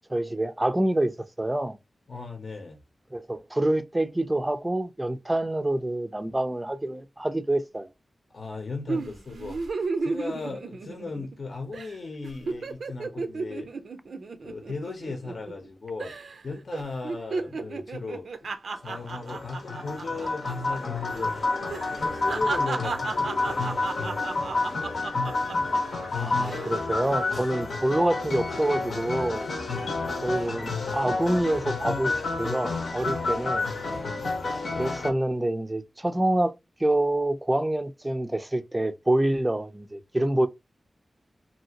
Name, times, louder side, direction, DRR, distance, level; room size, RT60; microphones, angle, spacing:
voice 1, 0.1-1.1 1.4-1.8 3.1-7.9 26.1-29.5 30.2-32.1 32.4-33.7 34.7-36.5 36.8-40.5, right 1 dB, 15° right, 0.4 m, -26 dB
voice 2, 2.1-2.8 8.3-13.7 14.4-16.1 16.4-18.5 18.8-21.4 21.9-25.1 29.7-30.1 33.0-33.4, left 3 dB, 60° left, 0.7 m, -37 dB
sound 1, 8.9-11.4 11.7-11.9 12.2-15.7 16.0-16.4 16.7-20.8 21.0-21.2 21.7-25.8 26.3-26.7, right 4 dB, 80° right, 0.4 m, -34 dB
sound 2, 18.9-35.1, left 3 dB, 90° left, 0.9 m, -29 dB
2.8 x 2.7 x 2.8 m
wide cardioid pair, 110°, 0 cm